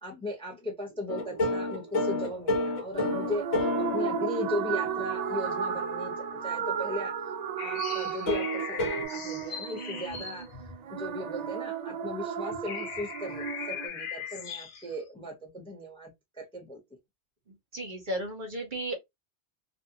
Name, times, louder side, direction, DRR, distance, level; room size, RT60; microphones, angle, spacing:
voice 1, 0.0-7.1 7.6-16.8, left 1 dB, 5° left, 0.6 m, -38 dB
sound 1, 1.1-6.9 8.3-9.1, left 1 dB, 75° left, 1.3 m, -32 dB
sound 2, 2.9-13.9, right 7 dB, 70° right, 0.3 m, -34 dB
sound 3, 7.6-11.5 12.0-12.1 12.4-14.9, left 7 dB, 55° left, 0.7 m, -39 dB
voice 2, 17.7-18.9, right 1 dB, 50° right, 0.8 m, -34 dB
2.5 x 2.4 x 2.7 m
omnidirectional pair, 1.2 m